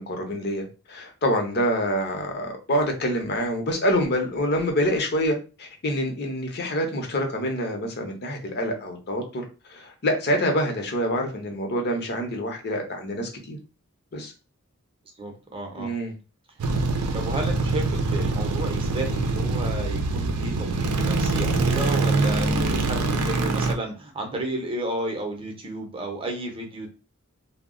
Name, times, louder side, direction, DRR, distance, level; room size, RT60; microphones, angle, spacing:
voice 1, 0.0-9.4 9.7-13.6 14.1-14.3 15.8-16.1, equal, 50° left, 3 dB, 0.7 m, -26 dB
voice 2, 15.2-15.9 17.1-26.9, right 2 dB, 25° right, 2 dB, 0.7 m, -32 dB
sound 1, 16.6-23.7, right 3 dB, 85° right, 0.5 m, -24 dB
2.3 x 2.1 x 3.6 m, 0.32 s
head